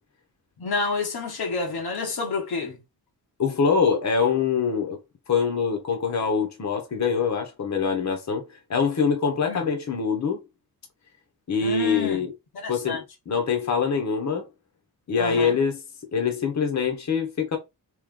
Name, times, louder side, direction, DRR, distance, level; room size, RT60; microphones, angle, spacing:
voice 1, 0.6-2.8 9.5-9.6 11.6-12.2 12.5-13.0 15.2-15.6, left 4 dB, 80° left, 1.2 m, -29 dB
voice 2, 3.4-5.0 5.3-8.4 8.7-10.4 11.5-12.3 12.7-14.5 15.1-15.8 16.1-17.6, left 6 dB, 45° left, 1.0 m, -24 dB
3.2 x 3.0 x 3.7 m
wide cardioid pair, 155°, 37 cm